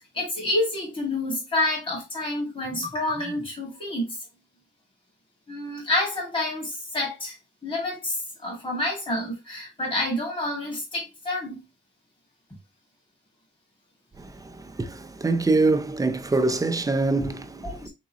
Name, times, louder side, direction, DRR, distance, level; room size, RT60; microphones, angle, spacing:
voice 1, 0.1-4.2 5.5-7.3 7.6-11.5 17.6-17.9, left 1 dB, 25° left, 2.0 m, -28 dB
voice 2, 14.2-17.9, right 3 dB, 15° right, 0.4 m, -25 dB
3.9 x 3.6 x 2.9 m
wide cardioid pair, 155°, 21 cm